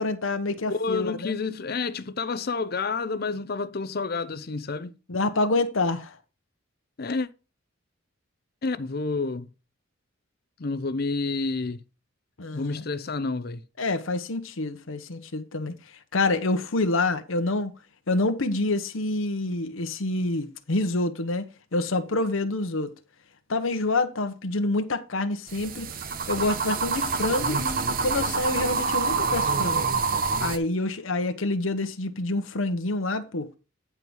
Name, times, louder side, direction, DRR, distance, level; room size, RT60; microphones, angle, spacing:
voice 1, 0.0-1.3 5.1-6.2 12.4-12.9 13.8-15.7 16.1-17.7 18.1-21.5 21.7-22.9 23.5-25.9 26.3-29.9 30.4-33.5, left 2 dB, 70° left, 0.9 m, -27 dB
voice 2, 0.7-4.9 7.0-7.3 8.6-9.5 10.6-11.8 12.5-13.6, left 4 dB, 45° left, 0.6 m, -29 dB
sound 1, 25.5-30.6, right 5 dB, 45° right, 0.8 m, -27 dB
9.7 x 4.6 x 5.4 m
head